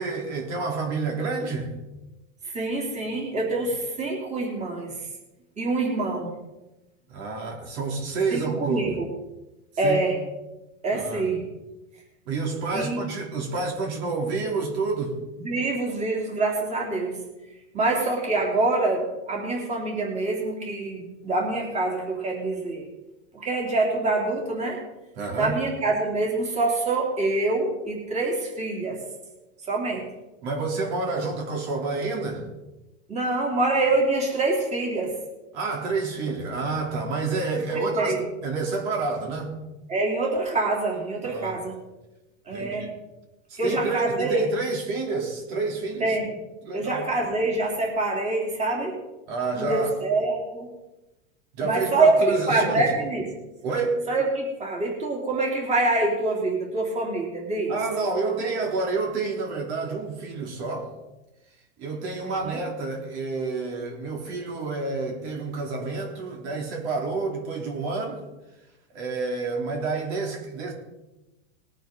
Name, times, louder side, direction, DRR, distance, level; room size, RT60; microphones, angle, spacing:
voice 1, 0.0-1.7 7.1-8.9 9.8-10.0 10.9-11.2 12.3-15.2 25.2-25.6 30.4-32.4 35.5-38.1 38.4-39.5 41.2-41.6 42.5-42.9 43.5-46.1 46.6-47.1 49.3-49.9 51.6-52.9 53.6-54.0 57.7-60.9 61.8-68.2 68.9-70.7, right 3 dB, 60° right, 1 dB, 3.4 m, -29 dB
voice 2, 2.4-5.1 5.6-6.3 8.3-9.1 9.8-10.2 10.8-11.4 12.7-13.0 15.4-17.2 17.7-22.8 23.3-24.8 25.4-29.0 29.7-30.0 33.1-35.1 37.7-38.2 39.9-41.7 42.5-42.8 43.6-44.5 46.0-46.4 46.7-49.0 49.5-50.7 51.6-53.3 54.1-57.7 62.2-62.6, right 2 dB, 20° right, -1 dB, 3.2 m, -25 dB
20.5 x 9.0 x 3.9 m, 1.0 s
supercardioid pair, 140°, 37 cm